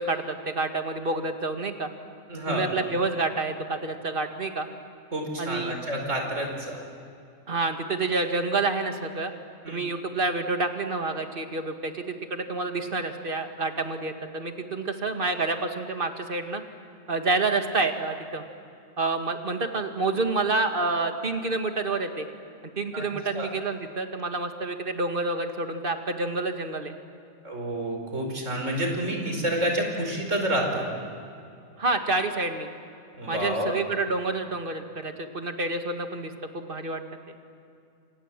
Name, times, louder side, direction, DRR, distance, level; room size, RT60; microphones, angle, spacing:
voice 1, 0.0-1.9 2.5-4.7 5.4-5.7 7.5-9.3 9.7-16.6 17.1-18.4 19.0-22.3 22.8-26.9 31.8-32.7 33.3-37.0, right 3 dB, 40° right, 5 dB, 2.2 m, -28 dB
voice 2, 2.3-2.6 5.1-6.8 9.6-9.8 22.9-23.1 23.3-23.5 27.4-30.9 33.2-33.8, right 1 dB, 65° right, 2 dB, 5.2 m, -29 dB
29.5 x 26.5 x 7.6 m, 2.5 s
omnidirectional pair, 1.4 m